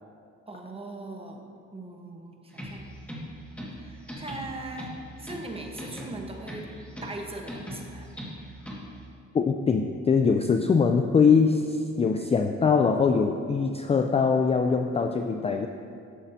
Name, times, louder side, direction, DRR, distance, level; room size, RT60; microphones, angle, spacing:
voice 1, 0.5-1.4 1.7-2.9 3.7-6.7 7.0-8.1, right 2 dB, 20° right, 1 dB, 1.1 m, -40 dB
sound 1, 2.5-9.1, equal, 5° left, 1.7 m, -40 dB
voice 2, 9.3-15.7, left 5 dB, 20° left, 5 dB, 0.3 m, -22 dB
11.0 x 7.2 x 2.7 m, 2.4 s
cardioid pair, 90°, 30 cm